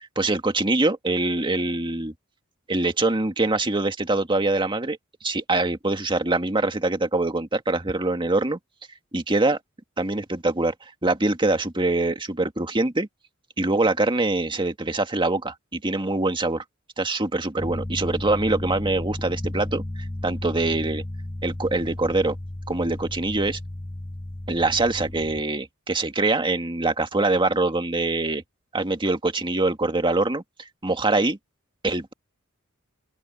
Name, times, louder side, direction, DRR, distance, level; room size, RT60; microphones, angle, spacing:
voice 1, 0.2-2.1 2.7-5.0 5.2-8.6 9.1-9.6 10.0-10.7 11.0-13.1 13.6-16.6 17.0-19.8 20.2-21.0 21.4-22.4 22.7-23.6 24.5-28.4 28.7-30.4 30.8-31.4 31.8-32.1, right 2 dB, 25° right, 1.9 m, -24 dB
sound 1, 17.6-25.4, left 1 dB, 10° left, 0.6 m, -34 dB
open air
head